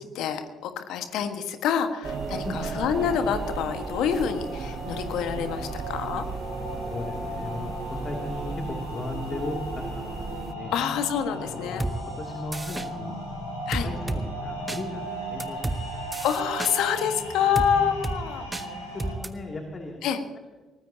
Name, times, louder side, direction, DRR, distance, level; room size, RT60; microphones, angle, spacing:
voice 1, 0.1-2.4 2.7-6.2 10.7-11.8 13.7-13.9 16.2-18.5 20.0-20.2, left 8 dB, 60° left, 8 dB, 1.5 m, -27 dB
sound 1, 2.0-19.1, equal, 85° left, 3.4 m, -37 dB
sound 2, 2.0-10.5, right 5 dB, 40° right, 0.8 m, -35 dB
voice 2, 6.7-10.7 11.4-13.1 13.8-16.0 17.7-17.9 18.6-20.0, left 2 dB, 35° left, 1 dB, 2.8 m, -37 dB
sound 3, 11.8-11.9 12.5-12.9 13.7-14.2 14.7-14.8 15.4-15.8 16.1-16.7 17.5-17.7 18.0-18.2 18.5-18.6 19.0-19.3, right 2 dB, 15° right, 1.3 m, -30 dB
23.0 x 19.5 x 2.9 m, 1.3 s
figure-of-eight pair, 45°, 0 cm